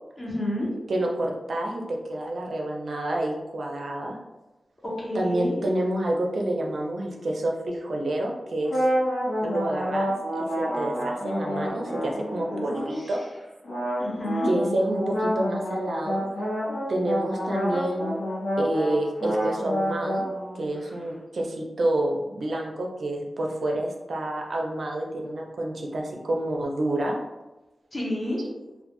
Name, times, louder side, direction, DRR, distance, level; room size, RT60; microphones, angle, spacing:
voice 1, 0.2-0.7 4.8-5.6 12.5-13.1 14.0-14.5 27.9-28.4, left 1 dB, 30° left, -5 dB, 0.7 m, -30 dB
voice 2, 0.9-4.2 5.1-8.9 9.4-13.2 14.4-16.2 16.9-18.1 18.6-20.3 20.5-27.2, right 1 dB, 65° right, 0 dB, 0.4 m, -28 dB
sound 1, 8.6-13.1 13.6-20.9, equal, 70° left, 0.6 m, -28 dB
2.1 x 2.1 x 2.8 m, 1.0 s
wide cardioid pair, 140°, 0 cm